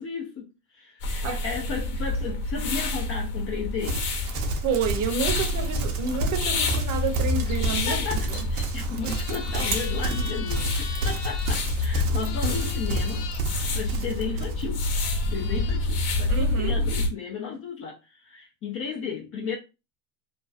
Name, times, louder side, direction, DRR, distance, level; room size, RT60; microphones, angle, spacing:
voice 1, 0.0-4.0 7.7-13.3 13.6-14.9 15.3-19.6, left 6 dB, 30° left, 0.4 m, -34 dB
sound 1, 1.0-17.1, left 2 dB, 55° left, 0.8 m, -28 dB
Livestock farm animals working animals, 3.8-15.0, right 3 dB, 75° right, 0.7 m, -31 dB
voice 2, 4.6-8.0 12.2-12.3 16.3-16.8, right 6 dB, 40° right, 0.7 m, -29 dB
sound 2, 9.0-11.6 12.2-13.4 14.4-14.5 14.9-15.9, left 6 dB, 85° left, 0.6 m, -40 dB
2.5 x 2.1 x 2.4 m
hypercardioid pair, 95°, 47 cm